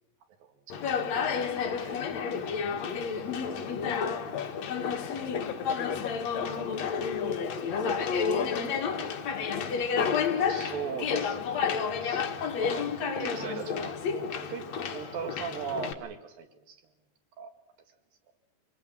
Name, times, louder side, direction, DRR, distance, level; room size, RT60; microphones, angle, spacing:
voice 1, 0.4-0.8 1.8-2.0 10.4-12.9 13.1-16.8 17.4-17.5, right 7 dB, 60° right, 7 dB, 3.6 m, -39 dB
Conversation, 0.7-15.9, left 6 dB, 55° left, 2.2 m, -31 dB
voice 2, 2.7-3.1 3.4-7.6 8.0-8.9, left 11 dB, 75° left, 10 dB, 3.4 m, -40 dB
25.5 x 21.0 x 7.6 m, 0.89 s
omnidirectional pair, 4.9 m